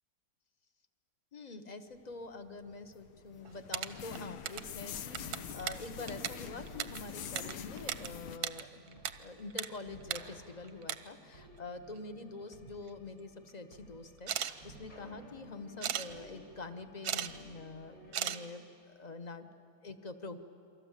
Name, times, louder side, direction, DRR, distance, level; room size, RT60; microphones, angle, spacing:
voice 1, 1.3-20.4, left 3 dB, 30° left, 8 dB, 0.8 m, -46 dB
sound 1, 2.4-8.4, left 8 dB, 90° left, 1.7 m, -45 dB
sound 2, 3.4-4.7 5.0-8.1 8.3-9.1 9.4-9.7 10.0-10.2 10.6-11.0 12.0-12.1 12.4-13.0 14.2-14.5 15.8-16.1 16.8-17.3 17.6-17.7 18.1-18.4, right 10 dB, 60° right, 1.1 m, -36 dB
sound 3, 5.1-18.3, right 1 dB, 55° left, 5.9 m, -56 dB
28.5 x 24.0 x 7.5 m, 2.7 s
omnidirectional pair, 2.2 m